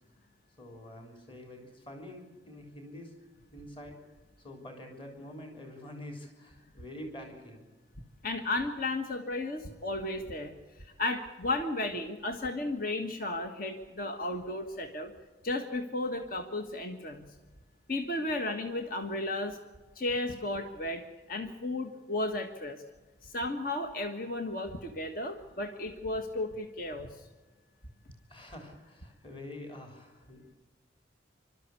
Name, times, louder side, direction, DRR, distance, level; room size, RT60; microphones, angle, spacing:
voice 1, 0.6-3.1 3.5-4.0 4.4-7.7 28.3-30.6, left 1 dB, 30° left, 3 dB, 3.6 m, -46 dB
voice 2, 8.2-15.1 15.4-17.2 17.9-19.6 19.9-22.8 23.2-27.3, left 2 dB, 50° left, 6 dB, 1.6 m, -34 dB
27.0 x 13.0 x 8.4 m, 1.2 s
head